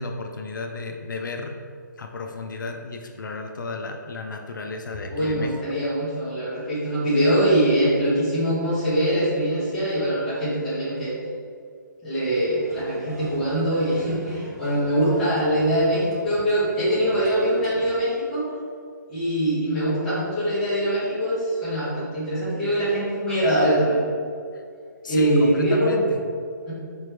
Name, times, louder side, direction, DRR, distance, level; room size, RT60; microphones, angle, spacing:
voice 1, 0.0-1.6 2.0-5.5 24.5-24.6 25.0-26.2, left 3 dB, 70° left, 4 dB, 0.4 m, -32 dB
voice 2, 5.1-11.1 12.0-18.4 19.1-24.0 25.1-26.0 26.7-26.8, right 1 dB, 5° left, -14 dB, 0.7 m, -23 dB
sound 1, 12.6-17.9, right 2 dB, 50° right, 0.8 m, -41 dB
4.1 x 3.3 x 3.2 m, 2.2 s
hypercardioid pair, 180°, 11 cm